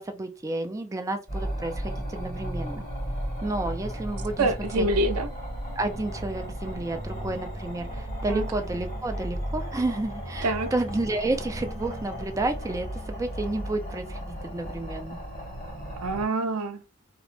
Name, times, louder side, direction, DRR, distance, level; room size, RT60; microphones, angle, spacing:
voice 1, 0.0-2.8 3.4-4.5 4.7-4.9 5.8-15.2, right 2 dB, 15° right, 0.3 m, -31 dB
sound 1, 1.3-16.2, equal, 40° left, 1.5 m, -34 dB
voice 2, 4.4-5.3 8.3-8.5 10.4-10.7 16.0-16.8, right 2 dB, 85° right, 0.5 m, -26 dB
2.9 x 2.1 x 3.0 m
head